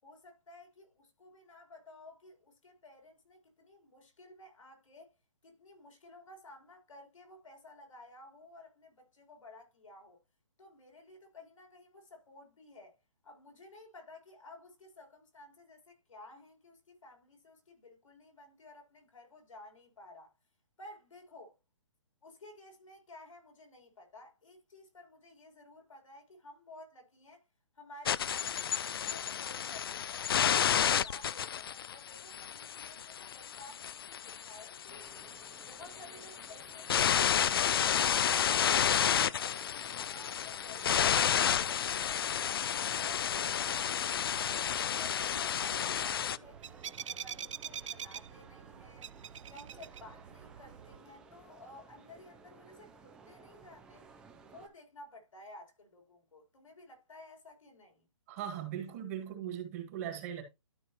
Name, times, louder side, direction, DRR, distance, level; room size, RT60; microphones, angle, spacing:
voice 1, 0.0-5.1 5.4-10.2 10.6-13.0 13.2-20.3 20.8-21.6 22.2-27.4 27.7-35.1 35.6-42.6 43.0-49.1 49.5-54.1 54.4-58.1, left 2 dB, 90° left, 4.1 m, -54 dB
sound 1, 28.1-46.4, left 9 dB, 50° left, 0.4 m, -31 dB
sound 2, 34.9-54.7, right 5 dB, 5° right, 0.5 m, -57 dB
sound 3, 46.0-51.0, right 9 dB, 75° right, 0.4 m, -45 dB
voice 2, 58.3-60.4, right 10 dB, 30° right, 1.9 m, -39 dB
12.5 x 4.7 x 2.9 m
hypercardioid pair, 165°, 16 cm